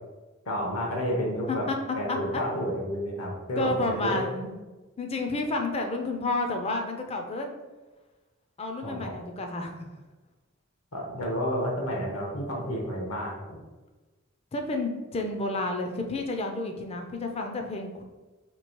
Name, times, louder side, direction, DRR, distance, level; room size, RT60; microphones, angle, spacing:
voice 1, 0.4-1.6 1.9-4.2 8.8-9.1 10.9-13.6, equal, 75° left, -1 dB, 1.0 m, -30 dB
voice 2, 2.1-2.4 3.6-4.6 5.0-7.5 8.6-9.9 14.5-18.0, left 2 dB, 30° left, 4 dB, 0.4 m, -30 dB
3.0 x 2.7 x 4.4 m, 1.2 s
head